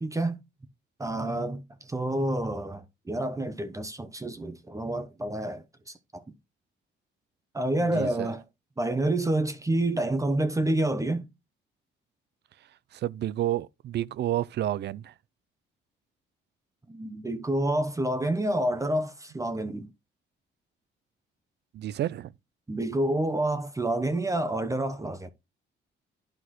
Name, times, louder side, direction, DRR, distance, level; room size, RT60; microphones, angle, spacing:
voice 1, 0.0-0.4 1.0-6.3 7.5-8.4 8.8-11.3 16.9-19.9 22.7-25.3, right 1 dB, 15° right, 0.9 m, -28 dB
voice 2, 7.9-8.3 12.9-15.1 21.7-22.3, right 13 dB, 60° right, 0.5 m, -30 dB
11.5 x 3.9 x 3.1 m
cardioid pair, 90°, 20 cm